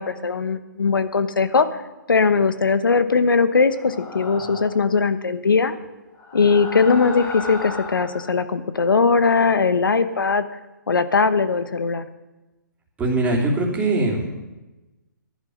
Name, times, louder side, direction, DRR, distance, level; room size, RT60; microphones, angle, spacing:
voice 1, 0.0-1.7 2.1-5.7 6.3-10.4 10.9-12.0, left 4 dB, 90° left, 12 dB, 1.1 m, -19 dB
sound 1, 3.7-4.9 6.1-8.3, left 3 dB, 20° left, 2.4 m, -34 dB
voice 2, 13.0-14.3, right 2 dB, 10° right, -4 dB, 3.2 m, -21 dB
14.5 x 11.0 x 6.4 m, 1.1 s
hypercardioid pair, 145°, 11 cm